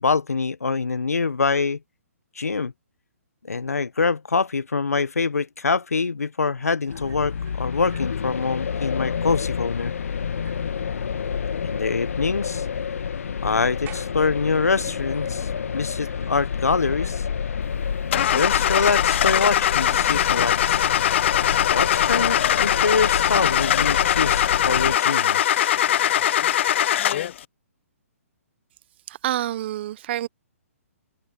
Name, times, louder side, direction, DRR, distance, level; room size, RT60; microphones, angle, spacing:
voice 1, 0.0-1.8 2.4-2.7 3.4-9.9 11.6-12.7 13.4-17.2 18.1-20.9 21.7-25.7, left 4 dB, 85° left, 1.1 m, -25 dB
sound 1, 6.8-22.2, right 14 dB, 25° right, 5.2 m, -54 dB
sound 2, 6.9-25.0, left 7 dB, 70° left, 1.6 m, -29 dB
Car / Engine starting, 18.1-27.4, left 11 dB, 50° left, 0.4 m, -21 dB
voice 2, 29.1-30.3, right 13 dB, 45° right, 1.1 m, -27 dB
hypercardioid pair, 135°, 8 cm